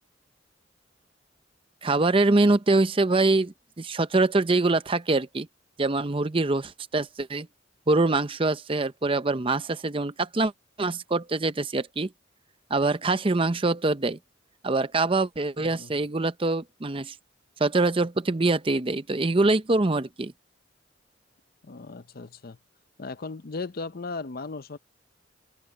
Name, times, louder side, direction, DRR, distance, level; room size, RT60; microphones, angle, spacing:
voice 1, 1.8-5.5 5.8-7.5 7.9-10.5 10.8-12.1 12.7-14.2 14.6-17.1 17.6-20.3, right 2 dB, 30° right, 0.7 m, -24 dB
voice 2, 15.6-15.9 21.6-22.6 23.0-24.8, left 3 dB, 50° left, 0.7 m, -37 dB
head